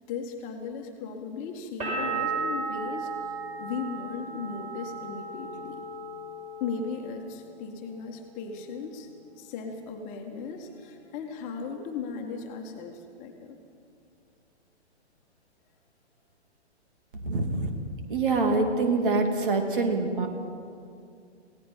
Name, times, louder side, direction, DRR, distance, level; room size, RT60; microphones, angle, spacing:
voice 1, 0.1-5.8 6.6-9.1 9.4-13.6, left 5 dB, 25° left, 2 dB, 1.7 m, -37 dB
sound 1, 1.8-7.4 7.7-8.5, right 3 dB, 20° right, 5.8 m, -35 dB
voice 2, 17.2-17.7 18.1-20.3, right 3 dB, 50° right, 4 dB, 3.0 m, -25 dB
28.0 x 17.5 x 5.7 m, 2.4 s
figure-of-eight pair, 120°, 34 cm